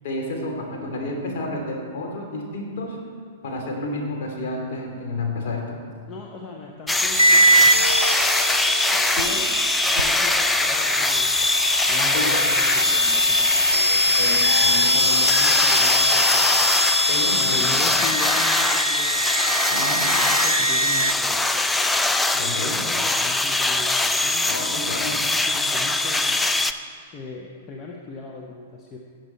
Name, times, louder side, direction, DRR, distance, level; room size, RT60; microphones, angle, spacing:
voice 1, 0.0-3.0 3.4-5.8 12.1-12.4 14.2-14.9 17.1-17.7 19.7-20.0 22.4-22.8 24.5-25.1, left 2 dB, 50° left, 0 dB, 2.8 m, -30 dB
voice 2, 6.1-7.7 8.9-9.5 9.9-11.3 11.9-14.4 14.9-16.7 17.3-19.2 20.4-21.6 22.3-24.5 24.9-26.5 27.1-29.0, left 4 dB, 30° left, 0 dB, 1.0 m, -38 dB
sound 1, 6.9-26.7, left 2 dB, 5° left, 0.5 m, -22 dB
sound 2, 7.1-21.1, equal, 90° right, 0.5 m, -22 dB
sound 3, 7.7-8.2 9.0-9.2 9.5-9.6 9.9-10.1 10.9-11.2 11.8-12.0 12.8-13.0 13.4-13.5 13.8-13.9 14.6-14.9 15.3-15.8 16.6-16.8 17.6-17.8, right 5 dB, 45° right, 1.1 m, -43 dB
17.5 x 6.8 x 4.4 m, 2.1 s
figure-of-eight pair, 100°, 0 cm